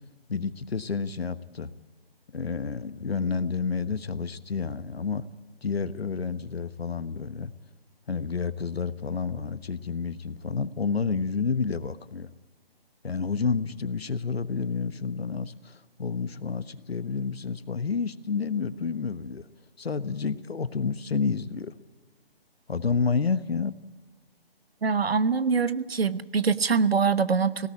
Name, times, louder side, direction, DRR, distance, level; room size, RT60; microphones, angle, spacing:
voice 1, 0.3-1.7 2.3-5.2 5.6-7.5 8.1-12.3 13.0-19.5 19.8-21.7 22.7-23.8, left 5 dB, 75° left, 14 dB, 1.3 m, -29 dB
voice 2, 24.8-27.7, right 5 dB, 75° right, 15 dB, 1.1 m, -24 dB
19.5 x 17.5 x 8.4 m, 1.3 s
figure-of-eight pair, 160°, 31 cm